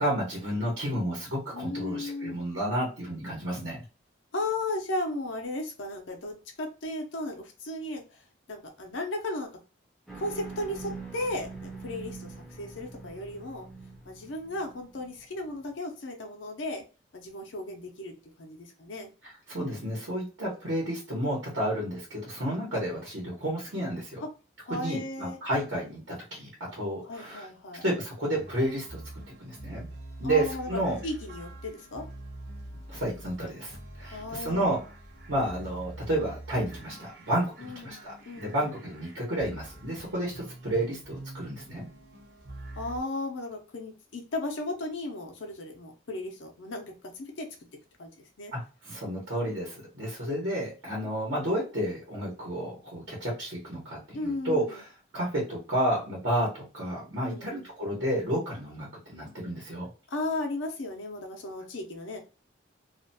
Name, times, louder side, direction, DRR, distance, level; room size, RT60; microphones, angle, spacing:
voice 1, 0.0-3.8 19.2-24.2 24.8-27.5 27.8-29.0 29.4-29.9 30.2-31.0 32.9-34.8 35.3-41.9 48.5-54.9 55.1-59.9, right 1 dB, 80° right, -4 dB, 1.0 m, -31 dB
voice 2, 1.5-2.4 4.3-8.2 8.5-9.5 10.1-13.7 14.0-16.8 17.1-19.1 24.6-25.4 27.0-27.8 30.2-32.0 34.1-34.7 37.6-38.9 42.8-47.5 48.0-48.1 48.4-48.5 54.1-54.8 57.3-57.7 60.1-62.2, left 2 dB, 80° left, 3 dB, 0.6 m, -35 dB
sound 1, 10.1-15.5, right 4 dB, ahead, 0.5 m, -44 dB
sound 2, 28.3-43.0, right 1 dB, 50° right, 0.6 m, -45 dB
2.4 x 2.2 x 2.6 m, 0.34 s
head